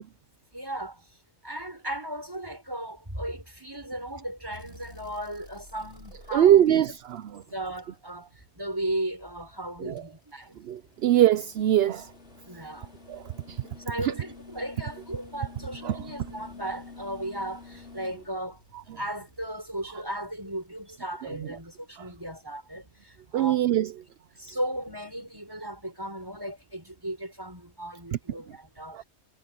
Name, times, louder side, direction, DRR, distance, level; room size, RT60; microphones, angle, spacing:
voice 1, 0.5-1.0 1.4-6.6 7.5-8.3 8.6-10.5 12.5-12.9 13.8-18.6 19.0-23.7 24.4-29.0, right 1 dB, 15° right, 5.2 m, -36 dB
sound 1, 4.5-8.7 10.0-21.2 22.7-22.8, left 3 dB, 50° left, 5.7 m, -50 dB
voice 2, 6.3-7.4 9.8-10.0 10.7-12.1 13.1-13.6 14.0-14.1 15.8-16.0 21.4-21.5 22.0-22.1 23.3-23.9 28.9-29.0, right 11 dB, 60° right, 0.7 m, -23 dB
omnidirectional pair, 1.5 m